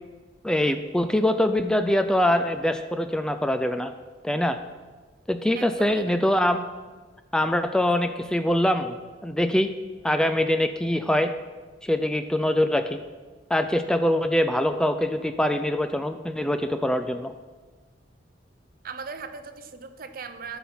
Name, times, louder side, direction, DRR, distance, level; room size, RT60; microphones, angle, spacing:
voice 1, 0.4-3.9 4.2-4.6 5.3-6.6 7.3-8.9 9.2-9.7 10.0-11.3 11.8-13.0 13.5-17.3, left 1 dB, 5° left, 8 dB, 0.4 m, -23 dB
voice 2, 5.5-6.2 18.8-20.6, right 5 dB, 50° right, 9 dB, 0.7 m, -38 dB
13.0 x 5.9 x 5.6 m, 1.3 s
head